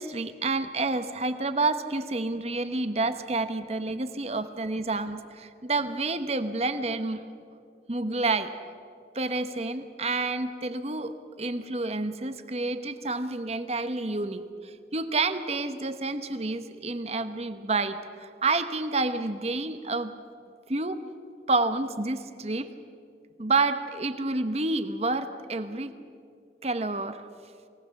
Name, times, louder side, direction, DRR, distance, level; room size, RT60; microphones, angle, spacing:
voice 1, 0.0-7.2 7.9-8.5 9.1-20.1 20.7-21.0 21.5-22.7 23.4-25.9 26.6-27.2, right 3 dB, 35° right, 10 dB, 1.0 m, -29 dB
22.5 x 18.0 x 7.2 m, 2.4 s
head